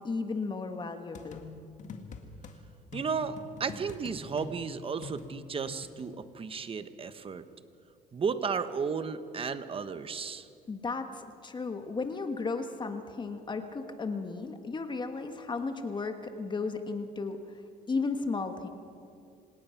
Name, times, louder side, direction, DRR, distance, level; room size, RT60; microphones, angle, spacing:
voice 1, 0.0-1.4 10.7-17.4 17.9-18.7, left 4 dB, 25° left, 7 dB, 1.6 m, -34 dB
sound 1, 1.1-2.6 2.9-6.1, left 5 dB, 45° left, 2.0 m, -45 dB
voice 2, 2.9-7.4 8.1-10.5, right 5 dB, 35° right, 11 dB, 1.2 m, -34 dB
26.5 x 18.5 x 5.9 m, 2.5 s
cardioid pair, 110°, 17 cm